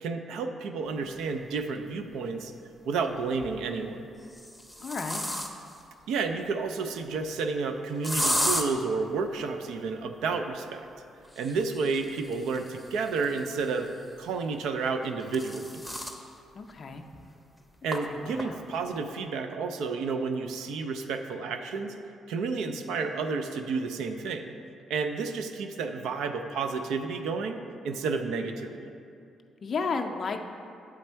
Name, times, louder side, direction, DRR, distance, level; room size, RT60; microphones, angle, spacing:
voice 1, 0.0-2.5 2.9-4.0 6.1-10.9 11.4-13.9 14.2-15.8 17.8-21.9 22.3-24.4 24.9-28.9, right 4 dB, 85° right, 6 dB, 0.4 m, -31 dB
sound 1, 1.7-1.8 3.2-3.6 4.2-5.8 8.0-8.6 11.2-13.9 14.9-16.2 16.7-16.8 17.1-17.2 17.9-18.0 18.4-18.8, equal, 5° right, 0.6 m, -33 dB
voice 2, 4.8-5.2 16.6-17.1 18.1-18.6 29.6-30.4, left 4 dB, 45° left, 3 dB, 0.4 m, -33 dB
8.3 x 3.4 x 4.4 m, 2.5 s
cardioid pair, 90°, 0 cm